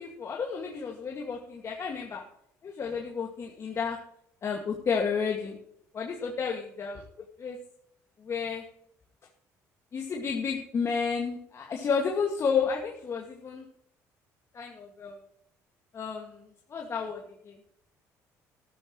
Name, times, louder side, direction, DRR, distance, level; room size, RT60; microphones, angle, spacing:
voice 1, 0.0-2.2 2.6-4.0 4.4-5.6 5.9-7.0 7.4-7.6 8.2-8.6 9.9-13.6 14.5-15.2 15.9-16.4 16.7-17.5, left 6 dB, 45° left, 0 dB, 2.1 m, -31 dB
13.5 x 12.5 x 3.2 m, 0.73 s
supercardioid pair, 85°, 7 cm